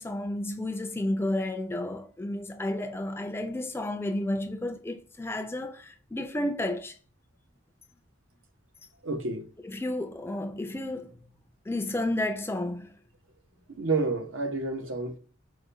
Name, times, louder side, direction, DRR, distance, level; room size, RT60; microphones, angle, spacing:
voice 1, 0.0-7.0 9.6-11.2 11.7-12.9, left 1 dB, 10° left, 0.4 m, -31 dB
voice 2, 9.0-9.5 13.7-15.2, right 3 dB, 80° right, 0.8 m, -29 dB
4.9 x 2.2 x 3.9 m
head